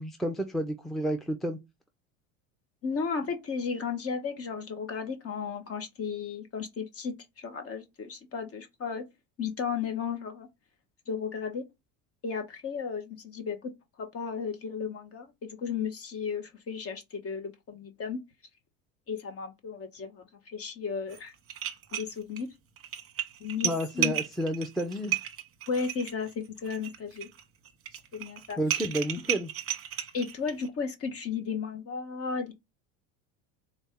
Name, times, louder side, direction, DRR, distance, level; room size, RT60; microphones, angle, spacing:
voice 1, 0.0-1.6 23.6-25.2 28.6-29.5, equal, ahead, 0.6 m, -30 dB
voice 2, 2.8-9.0 9.4-10.5 11.1-11.6 12.2-13.7 14.0-18.2 19.1-21.3 21.9-22.5 23.4-23.7 23.9-24.1 25.7-27.3 28.1-28.6 30.1-32.5, left 6 dB, 35° left, 1.4 m, -34 dB
sound 1, 21.1-21.2 21.5-22.4 22.8-30.7, right 11 dB, 35° right, 1.0 m, -34 dB
4.0 x 2.7 x 3.6 m
supercardioid pair, 95°, 39 cm